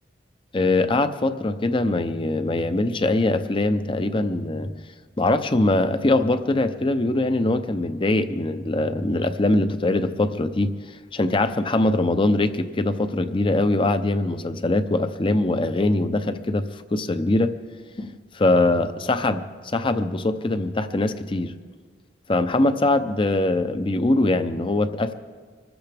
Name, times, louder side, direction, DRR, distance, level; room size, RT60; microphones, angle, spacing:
voice 1, 0.5-4.7 5.2-17.5 18.0-21.5 22.3-25.1, left 2 dB, 30° left, 10 dB, 0.7 m, -22 dB
25.0 x 14.0 x 3.5 m, 1.5 s
head